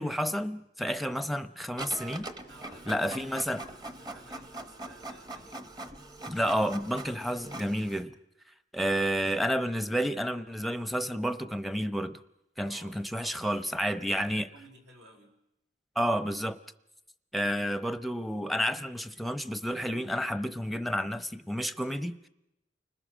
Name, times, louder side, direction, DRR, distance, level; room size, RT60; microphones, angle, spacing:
voice 1, 0.0-2.3 2.9-3.6 6.3-8.1 8.7-12.2 12.6-14.5 16.0-16.6 17.3-22.3, equal, ahead, 0.8 m, -30 dB
Printer, 1.8-8.0, right 2 dB, 25° right, 1.2 m, -42 dB
voice 2, 2.5-3.3 3.7-5.7 12.6-13.5 14.1-15.4 18.8-18.9, right 1 dB, 75° right, 4.9 m, -55 dB
30.0 x 20.5 x 6.2 m
head